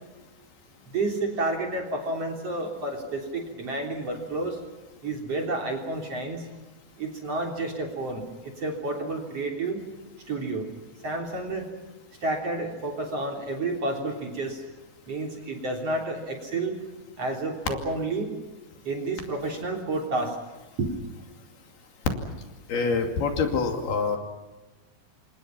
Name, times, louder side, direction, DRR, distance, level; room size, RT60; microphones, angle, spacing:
voice 1, 0.9-4.6 5.0-6.5 7.0-9.8 10.3-10.7 11.0-11.7 12.2-14.6 15.1-16.7 17.2-18.3 18.8-20.4 20.8-20.9, right 2 dB, 35° right, 2 dB, 4.1 m, -30 dB
voice 2, 22.7-24.2, left 4 dB, 65° left, 4 dB, 4.3 m, -25 dB
29.0 x 26.0 x 5.8 m, 1.1 s
omnidirectional pair, 5.0 m